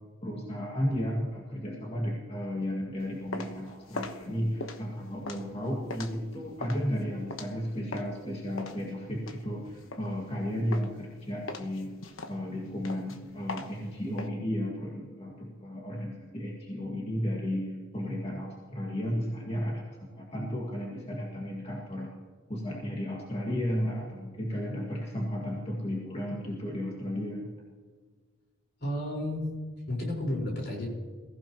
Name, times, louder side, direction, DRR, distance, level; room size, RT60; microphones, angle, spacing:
voice 1, 0.2-11.9 12.3-22.1 22.5-27.5, equal, 30° left, -3 dB, 2.0 m, -33 dB
sound 1, 3.0-8.2 8.6-10.4 10.7-11.1 11.5-14.3, left 2 dB, 80° left, 1.2 m, -40 dB
voice 2, 28.8-29.5 29.9-30.9, left 1 dB, 55° left, -2 dB, 4.6 m, -32 dB
22.0 x 15.0 x 3.0 m, 1.5 s
head